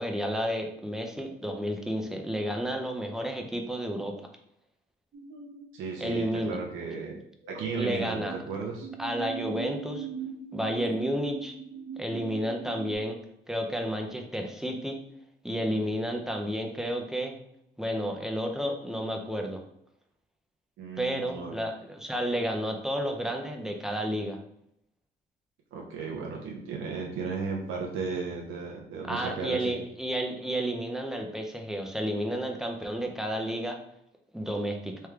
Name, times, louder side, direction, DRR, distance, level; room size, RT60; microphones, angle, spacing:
voice 1, 0.0-4.1 6.0-6.6 7.8-8.3 9.0-10.1 10.5-11.5 12.0-13.2 13.5-15.0 15.4-17.3 17.8-19.6 21.0-24.4 29.1-33.8 34.3-35.0, equal, ahead, 2 dB, 0.6 m, -31 dB
sound 1, 5.1-5.7 7.4-8.4 8.8-13.0, right 7 dB, 60° right, 0.9 m, -40 dB
voice 2, 5.7-7.2 7.5-8.9 20.8-21.5 25.7-29.8, right 4 dB, 90° right, -1 dB, 0.7 m, -35 dB
3.3 x 3.2 x 3.5 m, 0.77 s
cardioid pair, 90°, 20 cm